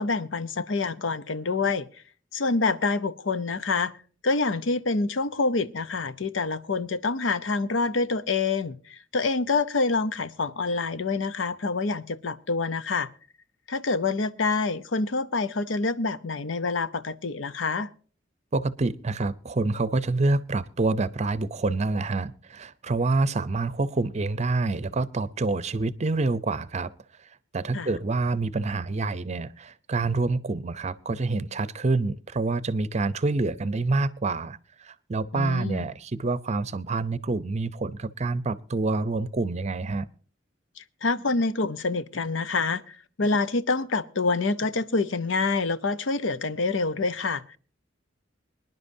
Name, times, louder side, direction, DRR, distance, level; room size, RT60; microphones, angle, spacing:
voice 1, 0.0-1.9 2.3-4.0 4.2-13.1 13.7-17.9 27.7-27.9 35.3-35.9 40.8-47.6, left 3 dB, 80° left, 0.7 m, -27 dB
voice 2, 18.5-26.9 27.5-40.1, right 3 dB, 35° right, 0.6 m, -27 dB
25.0 x 10.5 x 2.7 m
head